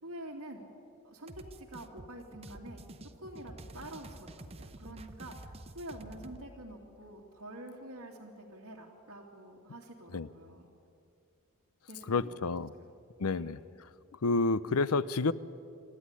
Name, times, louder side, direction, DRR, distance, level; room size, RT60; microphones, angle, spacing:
voice 1, 0.0-0.6 1.0-2.8 3.2-10.7 11.9-12.9 13.3-13.6, right 1 dB, 70° right, -3 dB, 2.8 m, -47 dB
sound 1, 1.3-6.4, right 2 dB, 25° right, 0.8 m, -49 dB
voice 2, 12.1-12.7 13.2-13.6 14.2-15.3, left 3 dB, 80° left, 17 dB, 0.6 m, -29 dB
27.0 x 13.5 x 9.8 m, 2.5 s
head